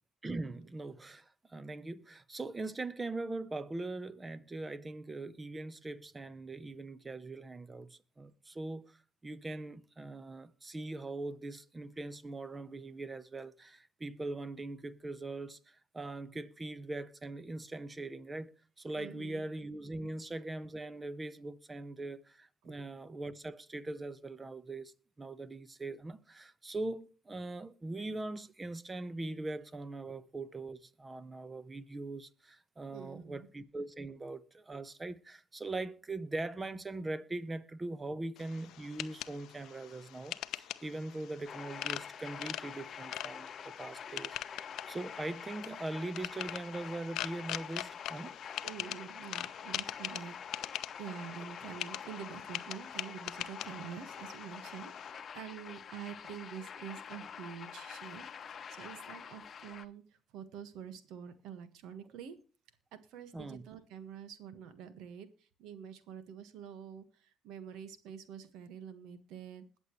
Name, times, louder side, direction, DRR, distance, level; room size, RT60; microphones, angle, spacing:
voice 1, 0.2-9.0 9.2-44.4 44.9-48.3 63.3-63.7, right 2 dB, 25° right, 1.1 m, -41 dB
voice 2, 19.0-19.4 20.0-20.1 22.6-22.8 32.9-33.5 48.6-60.0 60.3-62.4 62.9-69.6, right 8 dB, 75° right, 1.6 m, -47 dB
sound 1, 38.4-55.1, left 13 dB, 70° left, 0.6 m, -43 dB
sound 2, 41.5-59.9, left 7 dB, 45° left, 0.9 m, -46 dB
21.0 x 7.2 x 3.2 m
supercardioid pair, 70°, 0 cm